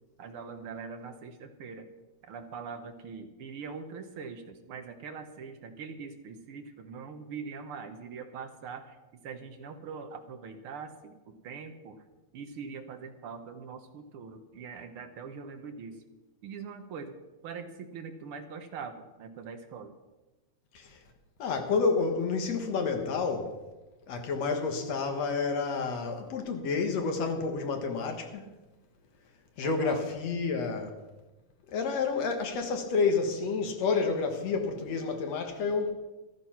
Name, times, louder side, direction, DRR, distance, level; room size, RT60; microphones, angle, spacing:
voice 1, 0.2-1.9 2.2-9.0 9.2-12.0 12.3-16.0 16.4-17.2 17.4-19.9 29.6-30.0, right 5 dB, 55° right, 1.7 m, -42 dB
voice 2, 21.4-23.5 24.1-28.4 29.6-30.9 31.7-35.9, left 4 dB, 65° left, 2.7 m, -29 dB
14.0 x 12.5 x 5.9 m
omnidirectional pair, 3.4 m